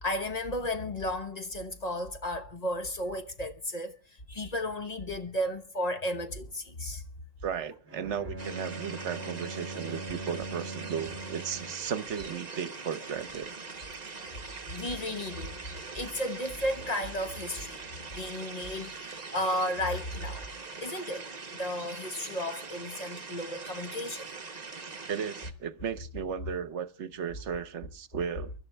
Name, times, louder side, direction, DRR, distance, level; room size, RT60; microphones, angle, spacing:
voice 1, 0.0-7.0 14.4-17.8 18.1-20.5 20.8-24.3, left 1 dB, 35° left, 1.2 m, -34 dB
voice 2, 7.4-13.5 25.1-28.5, right 7 dB, 65° right, 1.2 m, -35 dB
Bowed string instrument, 7.9-11.9, right 2 dB, 10° right, 2.7 m, -41 dB
sound 1, 8.4-25.5, right 4 dB, 35° right, 1.1 m, -42 dB
24.0 x 12.0 x 3.4 m
omnidirectional pair, 1.3 m